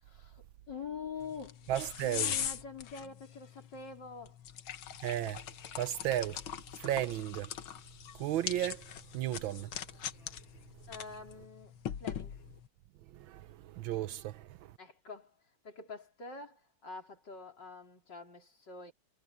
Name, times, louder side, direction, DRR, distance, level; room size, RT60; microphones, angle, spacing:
voice 1, 0.0-1.7 2.0-4.4 10.9-12.4 14.8-15.4 15.6-18.9, left 5 dB, 55° left, 4.4 m, -46 dB
sound 1, 1.2-12.7, left 9 dB, 75° left, 1.9 m, -42 dB
voice 2, 1.7-2.3 5.0-5.4 5.8-6.4 6.8-7.5 8.1-9.7 13.1-14.7, right 13 dB, 75° right, 1.3 m, -34 dB
omnidirectional pair, 2.3 m